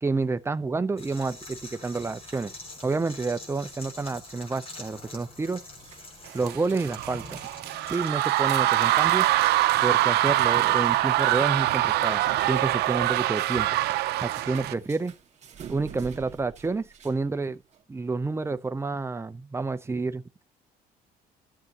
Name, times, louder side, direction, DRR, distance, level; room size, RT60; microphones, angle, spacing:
voice 1, 0.0-2.5 2.8-5.6 6.3-7.4 7.9-9.3 9.8-13.7 14.2-15.1 15.7-17.6 17.9-20.2, right 3 dB, 15° right, 0.7 m, -29 dB
sound 1, 1.0-8.5, left 2 dB, 35° left, 5.7 m, -45 dB
sound 2, 5.8-17.8, right 8 dB, 40° right, 2.0 m, -49 dB
sound 3, 6.4-14.7, right 15 dB, 80° right, 0.7 m, -24 dB
13.5 x 7.8 x 3.0 m
cardioid pair, 110°, 17 cm